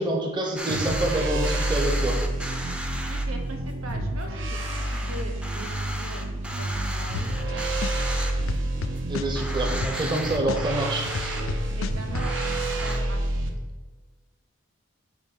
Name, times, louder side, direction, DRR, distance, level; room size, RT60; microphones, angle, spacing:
voice 1, 0.0-2.2 9.1-11.1, right 1 dB, 20° right, 0 dB, 0.8 m, -27 dB
sound 1, 0.6-3.2 3.7-3.8 4.2-4.3 4.5-8.7 9.0-9.1 9.3-11.4 12.2-13.0, equal, 5° right, 0.4 m, -35 dB
sound 2, 0.7-13.5, right 1 dB, 65° right, 0.8 m, -29 dB
voice 2, 3.1-7.6 11.7-13.2, right 1 dB, 90° right, 3 dB, 1.2 m, -41 dB
sound 3, 7.1-7.5 7.8-10.2 10.5-12.3, left 5 dB, 80° left, 0.4 m, -32 dB
8.9 x 3.1 x 5.5 m, 1.3 s
head